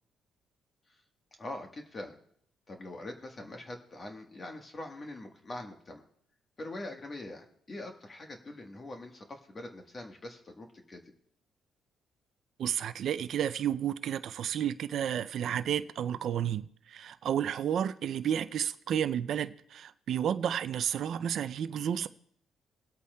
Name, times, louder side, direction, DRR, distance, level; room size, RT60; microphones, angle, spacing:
voice 1, 1.4-2.2 2.7-6.0 6.6-11.0, left 2 dB, 35° left, 1.2 m, -43 dB
voice 2, 12.6-22.1, right 9 dB, 65° right, 0.3 m, -31 dB
22.0 x 8.3 x 2.2 m
cardioid pair, 90°, 0 cm